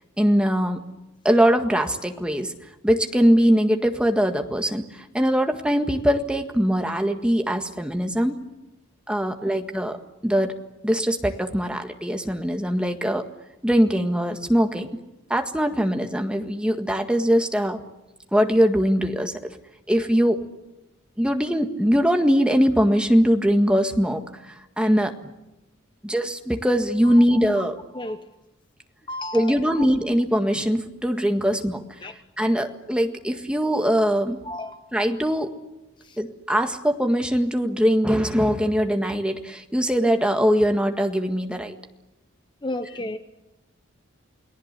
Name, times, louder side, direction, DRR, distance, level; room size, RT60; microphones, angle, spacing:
voice 1, 0.2-0.8 1.2-2.5 2.8-8.4 9.1-10.0 10.2-10.6 10.8-13.3 13.6-14.9 15.3-17.8 18.3-19.4 19.9-20.5 21.2-25.1 26.0-27.7 29.3-31.9 32.4-34.4 34.9-35.5 36.2-41.7, equal, 5° right, 5 dB, 1.7 m, -21 dB
voice 2, 27.0-27.7 27.9-28.3 29.1-29.9 32.0-32.1 34.4-34.8 36.0-36.2 42.6-43.2, left 1 dB, 20° left, 9 dB, 0.9 m, -33 dB
29.5 x 19.5 x 8.3 m, 0.95 s
head